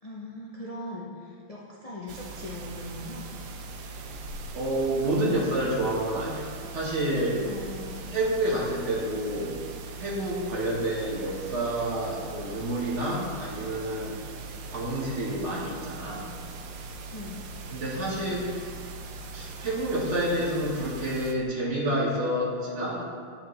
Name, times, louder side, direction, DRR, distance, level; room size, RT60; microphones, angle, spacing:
voice 1, 0.0-3.3 7.4-8.1 17.1-17.4, left 2 dB, 75° left, -6 dB, 0.3 m, -40 dB
sound 1, 2.1-21.3, right 3 dB, 70° right, 1.1 m, -40 dB
voice 2, 4.5-7.5 8.1-9.6 10.0-14.2 14.7-16.3 17.7-18.5 19.3-23.0, right 1 dB, 40° right, -5 dB, 1.4 m, -29 dB
9.8 x 5.6 x 3.1 m, 2.2 s
omnidirectional pair, 2.1 m